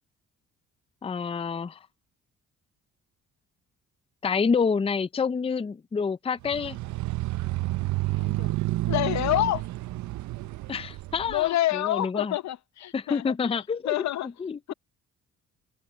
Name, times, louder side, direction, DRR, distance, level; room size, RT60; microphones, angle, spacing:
voice 1, 1.0-1.8 4.2-6.8 10.7-12.4 12.9-14.7, left 5 dB, 20° left, 0.5 m, -28 dB
sound 1, 6.4-11.4, right 18 dB, 70° right, 0.6 m, -30 dB
voice 2, 8.1-8.5 8.9-9.6 11.3-13.3 13.9-14.3 14.7-14.8, left 14 dB, 65° left, 0.7 m, -27 dB
cardioid pair, 90°, 30 cm